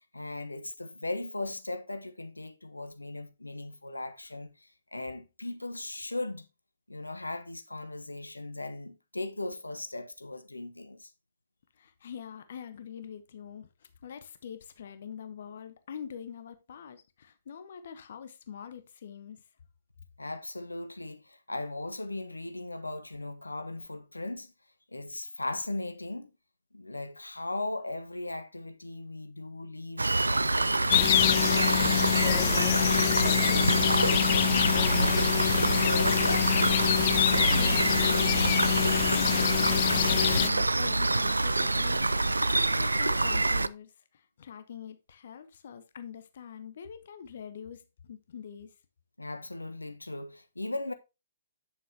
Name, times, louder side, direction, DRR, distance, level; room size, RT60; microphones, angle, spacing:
voice 1, 0.1-6.5 6.9-11.1 20.2-24.5 24.9-26.3 26.7-33.1 33.4-36.5 49.2-50.9, left 2 dB, 85° left, 1.1 m, -38 dB
voice 2, 11.8-19.4 37.2-42.0 42.5-48.7, left 8 dB, 55° left, 1.0 m, -44 dB
Rain, 30.0-43.7, right 2 dB, 80° right, 0.4 m, -26 dB
sound 1, 30.9-40.5, left 15 dB, 40° left, 0.3 m, -26 dB
8.9 x 7.7 x 2.9 m
figure-of-eight pair, 120°, 0 cm